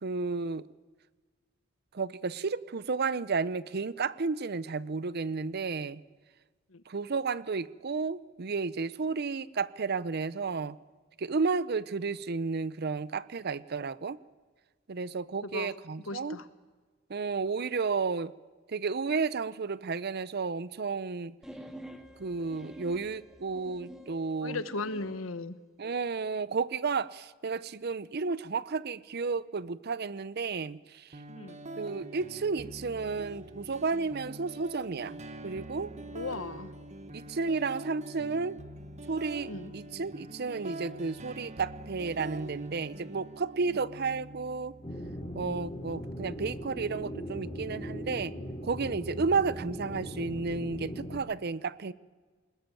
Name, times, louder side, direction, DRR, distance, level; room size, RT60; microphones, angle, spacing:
voice 1, 0.0-0.7 1.9-6.0 6.9-10.8 11.2-14.2 14.9-16.4 17.1-18.3 18.7-21.3 22.2-24.6 25.8-31.1 31.8-35.9 37.1-38.6 39.1-44.7 45.3-48.3 48.6-51.9, right 4 dB, 50° right, 18 dB, 0.6 m, -32 dB
voice 2, 15.4-15.7 16.1-16.5 24.4-25.5 31.4-31.6 36.1-36.7 39.4-39.7 43.7-43.8, left 3 dB, 85° left, 13 dB, 1.3 m, -37 dB
sound 1, 21.4-25.2, equal, ahead, 1.9 m, -48 dB
sound 2, 31.1-49.1, right 1 dB, 35° right, 1.4 m, -45 dB
sound 3, 44.8-51.2, equal, 25° left, 3.2 m, -39 dB
21.0 x 20.5 x 9.1 m, 1.4 s
head